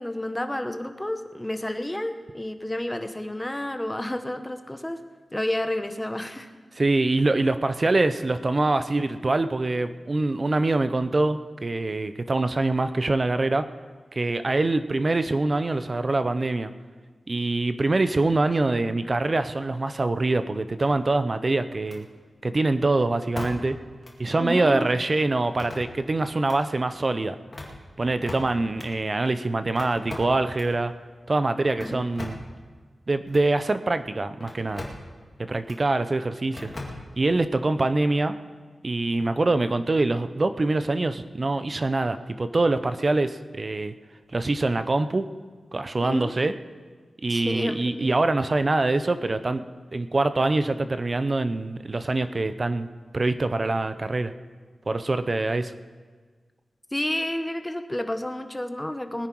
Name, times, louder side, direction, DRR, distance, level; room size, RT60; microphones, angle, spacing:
voice 1, 0.0-5.0 5.3-6.5 24.4-24.9 31.8-32.1 46.0-46.3 47.3-48.1 56.9-59.3, left 1 dB, 10° left, 7 dB, 0.9 m, -30 dB
voice 2, 6.8-13.6 14.1-16.7 17.3-22.1 22.4-23.8 24.2-27.4 28.0-30.9 31.3-32.4 33.1-34.9 35.5-36.7 37.2-38.3 38.8-43.9 44.3-45.3 45.7-46.5 47.2-49.6 49.9-52.9 53.1-54.3 54.9-55.7, right 2 dB, 35° right, 11 dB, 0.6 m, -24 dB
sound 1, 20.8-21.3 21.8-22.0 23.4-23.8 24.0-24.1 25.4-26.1 26.4-26.6 27.4-28.9 29.8-30.8 31.7-32.6 33.3-33.5 34.4-35.1 35.6-35.8 36.5-37.3, left 2 dB, 30° left, 2.3 m, -39 dB
20.5 x 10.0 x 4.6 m, 1.5 s
wide cardioid pair, 120°, 0 cm